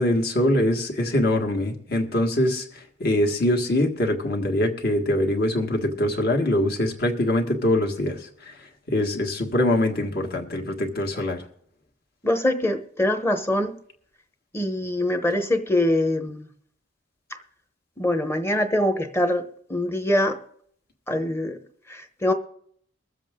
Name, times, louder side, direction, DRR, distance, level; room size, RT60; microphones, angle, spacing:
voice 1, 0.0-2.7 3.0-8.5 8.9-11.4, left 1 dB, 55° left, 2 dB, 1.8 m, -23 dB
voice 2, 12.2-13.7 14.5-16.4 18.0-19.4 19.7-20.4 21.1-21.6 21.9-22.3, left 1 dB, 15° left, 7 dB, 0.9 m, -23 dB
22.5 x 7.6 x 3.6 m, 0.64 s
head